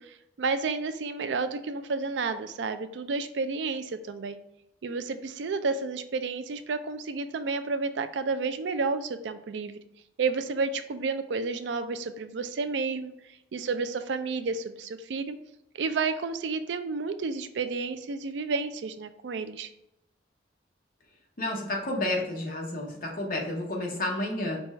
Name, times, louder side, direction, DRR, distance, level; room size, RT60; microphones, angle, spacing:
voice 1, 0.0-4.4 4.8-9.8 10.2-13.1 13.5-15.4 15.7-19.7, right 4 dB, 80° right, 10 dB, 0.4 m, -31 dB
voice 2, 21.4-24.6, left 1 dB, 50° left, -1 dB, 1.1 m, -31 dB
5.3 x 2.3 x 4.3 m, 0.83 s
head